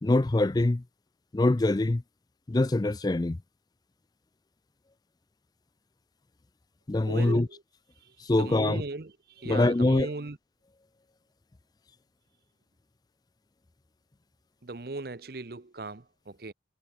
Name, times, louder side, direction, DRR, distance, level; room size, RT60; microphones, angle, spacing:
voice 1, 0.0-0.8 1.3-2.0 2.5-3.4 6.9-7.5 8.2-8.8 9.5-10.1, left 2 dB, 20° left, 0.4 m, -24 dB
voice 2, 7.1-7.6 8.3-10.4 14.6-16.5, right 2 dB, 55° right, 0.9 m, -37 dB
head